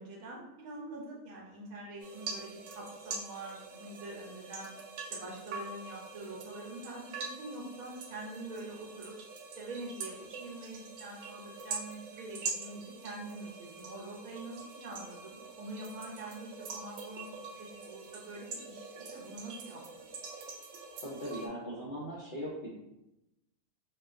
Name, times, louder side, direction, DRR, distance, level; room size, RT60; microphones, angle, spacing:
voice 1, 0.0-4.7 5.0-9.2 9.6-20.1, right 2 dB, 85° right, -2 dB, 1.1 m, -45 dB
sound 1, 2.0-21.5, right 4 dB, 65° right, 0.7 m, -44 dB
voice 2, 21.0-22.7, equal, 45° left, -7 dB, 0.8 m, -39 dB
4.6 x 2.2 x 2.4 m, 0.90 s
omnidirectional pair, 1.5 m